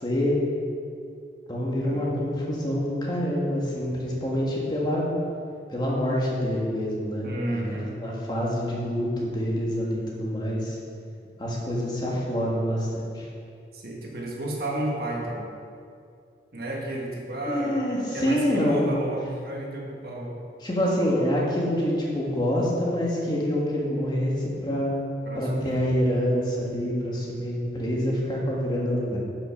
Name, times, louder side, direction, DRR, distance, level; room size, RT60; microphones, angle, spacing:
voice 1, 0.0-0.4 1.5-5.1 5.7-10.8 11.4-13.3 17.5-18.9 20.6-25.0 25.4-29.2, equal, 25° left, -3 dB, 1.6 m, -26 dB
voice 2, 1.8-2.3 7.2-8.0 13.7-15.4 16.5-20.3 25.2-25.8, right 1 dB, 55° right, -1 dB, 1.7 m, -32 dB
10.5 x 5.9 x 5.9 m, 2.4 s
head